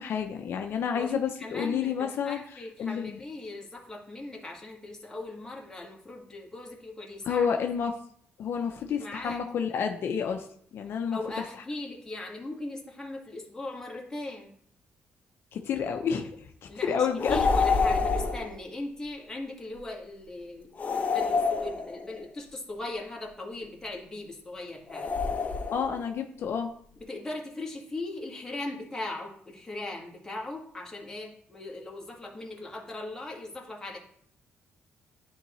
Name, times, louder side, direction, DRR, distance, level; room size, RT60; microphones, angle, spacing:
voice 1, 0.0-2.4 2.8-3.2 7.2-8.0 8.4-10.5 10.7-11.2 15.5-17.4 25.7-26.7, left 7 dB, 65° left, 4 dB, 0.6 m, -29 dB
voice 2, 0.9-7.5 9.0-9.6 11.1-14.5 16.7-20.7 21.0-25.1 27.0-34.0, left 2 dB, 15° left, -2 dB, 1.7 m, -39 dB
sound 1, 17.2-18.5 20.8-22.2 24.9-26.0, left 4 dB, 40° left, 0.8 m, -27 dB
10.5 x 3.7 x 3.1 m, 0.63 s
cardioid pair, 105°, 4 cm